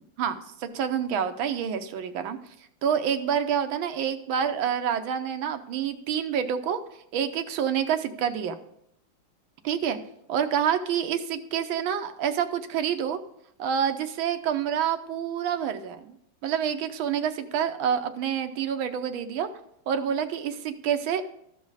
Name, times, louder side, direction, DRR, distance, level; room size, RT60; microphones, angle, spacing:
voice 1, 0.2-2.4 2.8-6.8 7.1-8.5 9.6-10.0 10.3-13.2 13.6-16.1 16.4-19.5 19.9-21.2, right 8 dB, 85° right, 8 dB, 1.6 m, -27 dB
13.5 x 5.3 x 4.8 m, 0.75 s
omnidirectional pair, 2.1 m